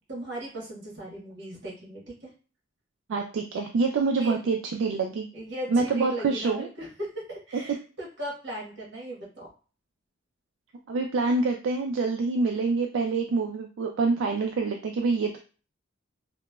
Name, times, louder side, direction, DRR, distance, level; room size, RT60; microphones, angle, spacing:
voice 1, 0.1-2.3 4.2-4.3 5.3-9.5, right 1 dB, 65° right, -4 dB, 1.2 m, -37 dB
voice 2, 3.1-5.3 5.7-6.7 10.9-15.4, right 4 dB, 85° right, 2 dB, 0.3 m, -26 dB
2.9 x 2.1 x 2.2 m, 0.38 s
head